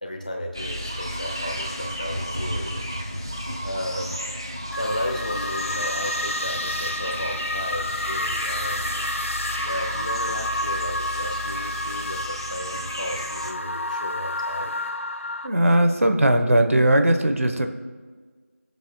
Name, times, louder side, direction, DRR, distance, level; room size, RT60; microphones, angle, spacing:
voice 1, 0.0-2.9 3.6-4.2 4.8-8.9 9.5-14.7, left 1 dB, 35° left, 2 dB, 1.3 m, -33 dB
sound 1, 0.5-13.5, equal, 20° right, 0.5 m, -33 dB
sound 2, 4.7-15.5, left 1 dB, 65° left, 0.9 m, -30 dB
voice 2, 15.4-17.7, right 1 dB, 75° right, 6 dB, 1.2 m, -19 dB
20.5 x 8.1 x 2.3 m, 1.5 s
figure-of-eight pair, 175°, 8 cm